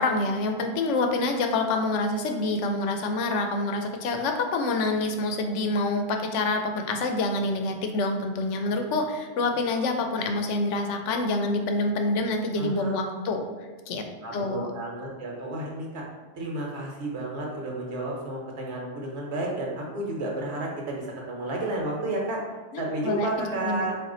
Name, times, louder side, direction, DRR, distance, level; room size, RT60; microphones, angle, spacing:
voice 1, 0.0-13.4 13.9-14.0 14.3-14.7 22.7-23.3 23.6-23.9, left 2 dB, 80° left, 5 dB, 0.9 m, -27 dB
voice 2, 12.6-13.0 14.2-16.0 16.3-22.4 22.8-23.9, right 2 dB, 65° right, -2 dB, 1.2 m, -31 dB
4.2 x 2.4 x 3.8 m, 1.3 s
omnidirectional pair, 1.2 m